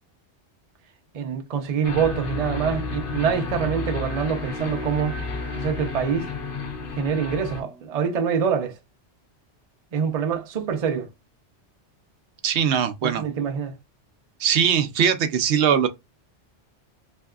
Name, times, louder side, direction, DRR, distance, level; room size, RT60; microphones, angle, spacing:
voice 1, 1.1-5.2 5.5-6.3 6.9-8.8 9.9-11.1 13.0-13.8, right 7 dB, 45° right, 0.6 m, -25 dB
sound 1, 1.8-7.6, left 4 dB, 55° left, 0.7 m, -31 dB
Wind instrument woodwind instrument, 2.4-8.3, right 2 dB, 5° left, 0.8 m, -43 dB
voice 2, 12.4-13.2 14.4-15.9, right 8 dB, 75° right, 0.8 m, -21 dB
3.4 x 2.8 x 2.3 m
omnidirectional pair, 1.2 m